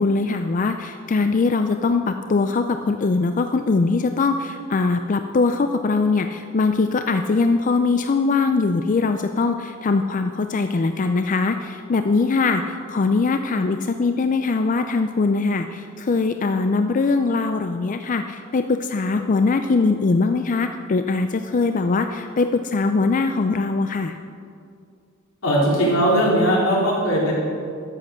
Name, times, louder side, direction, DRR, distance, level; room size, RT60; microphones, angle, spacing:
voice 1, 0.0-24.2, left 3 dB, 40° left, 8 dB, 0.4 m, -21 dB
voice 2, 25.4-27.3, equal, 80° left, -5 dB, 3.6 m, -19 dB
12.5 x 7.5 x 6.3 m, 2.3 s
head